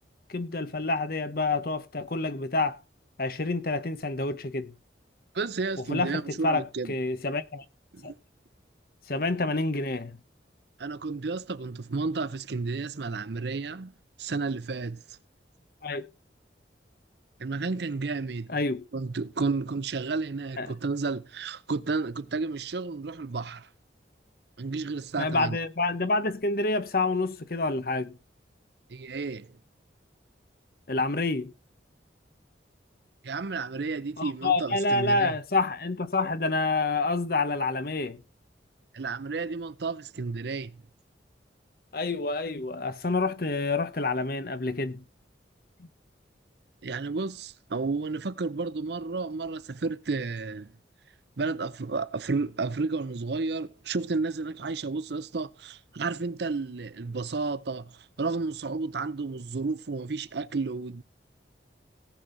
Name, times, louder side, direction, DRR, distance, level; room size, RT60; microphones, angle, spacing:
voice 1, 0.3-2.8 3.2-4.7 5.9-7.6 8.0-8.1 9.1-10.2 15.8-16.1 18.5-18.8 20.6-20.7 25.2-28.2 30.9-31.5 34.2-38.2 41.9-45.0 45.8-45.9, left 3 dB, 50° left, 0.9 m, -28 dB
voice 2, 5.3-6.9 7.9-8.1 10.8-13.9 14.2-15.2 17.4-18.6 18.9-23.7 24.6-25.6 28.9-29.6 33.2-35.4 38.9-40.8 46.8-50.7 51.4-61.0, right 4 dB, 65° right, 0.6 m, -32 dB
17.5 x 6.2 x 3.9 m
head